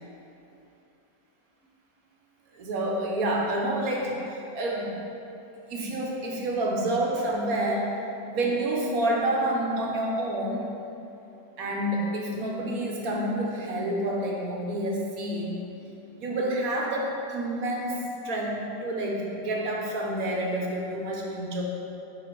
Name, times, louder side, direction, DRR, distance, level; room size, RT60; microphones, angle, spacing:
voice 1, 2.5-4.9 5.7-7.9 8.3-10.7 11.6-15.6 16.2-21.6, right 1 dB, 60° right, -1 dB, 1.2 m, -28 dB
7.1 x 5.1 x 4.6 m, 2.8 s
omnidirectional pair, 1.9 m